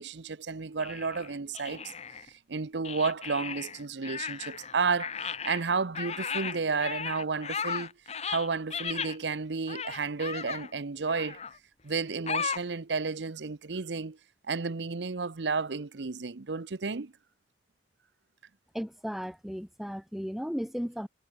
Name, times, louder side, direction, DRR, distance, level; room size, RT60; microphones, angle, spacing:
voice 1, 0.0-1.9 2.2-7.9 8.3-11.4 11.8-14.2 14.5-17.1, right 4 dB, 80° right, 0.8 m, -32 dB
sound 1, 0.8-2.3 2.8-4.7 5.0-9.2 9.7-10.7 11.1-11.6 12.3-12.6, left 6 dB, 35° left, 1.7 m, -36 dB
voice 2, 18.7-21.1, equal, ahead, 1.1 m, -35 dB
head